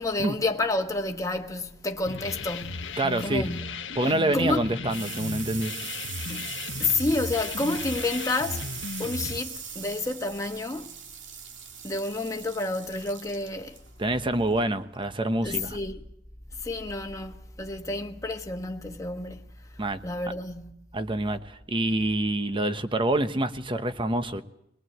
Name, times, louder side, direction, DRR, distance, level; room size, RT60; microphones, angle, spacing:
voice 1, 0.0-3.8 4.3-4.6 6.3-6.4 6.8-8.6 9.0-10.9 11.8-13.8 15.4-16.0 16.6-19.4 20.0-20.7, left 2 dB, 20° left, 1.4 m, -30 dB
sound 1, 2.0-9.4, left 4 dB, 70° left, 1.1 m, -36 dB
voice 2, 3.0-3.5 3.9-5.7 14.0-15.8 19.8-20.0 20.9-24.4, right 1 dB, 25° right, 1.1 m, -26 dB
sound 2, 4.4-15.5, right 7 dB, 75° right, 2.2 m, -40 dB
23.0 x 19.0 x 7.9 m
head